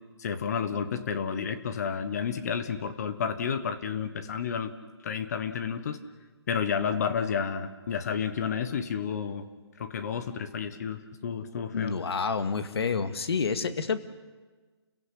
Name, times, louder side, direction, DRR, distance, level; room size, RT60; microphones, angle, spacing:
voice 1, 0.2-4.7 5.0-6.0 6.5-9.5 9.8-11.9, left 7 dB, 35° left, 11 dB, 1.3 m, -31 dB
voice 2, 11.7-14.0, left 5 dB, 65° left, 9 dB, 2.0 m, -28 dB
30.0 x 16.5 x 8.4 m, 1.3 s
hypercardioid pair, 165°, 14 cm